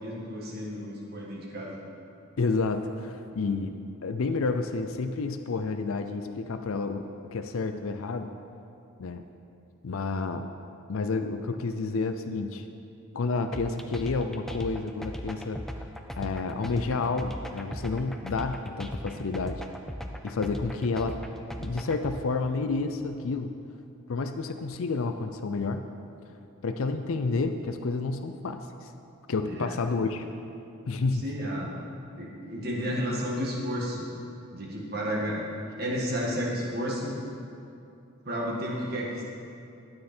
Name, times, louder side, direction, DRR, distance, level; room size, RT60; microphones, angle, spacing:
voice 1, 0.0-1.8 26.9-27.0 29.5-29.7 31.1-31.7 32.2-34.1 34.5-35.4 35.8-37.2 38.3-39.2, equal, 45° right, -3 dB, 1.8 m, -32 dB
voice 2, 2.4-7.0 7.3-8.3 9.0-9.2 9.8-10.5 10.9-12.7 13.1-15.9 16.2-19.6 20.2-21.2 21.6-23.5 24.1-25.8 26.6-28.9 29.3-30.3 30.9-31.3, left 3 dB, 75° left, 7 dB, 0.5 m, -30 dB
sound 1, 13.5-22.2, equal, ahead, 0.4 m, -38 dB
13.0 x 8.9 x 4.4 m, 2.7 s
head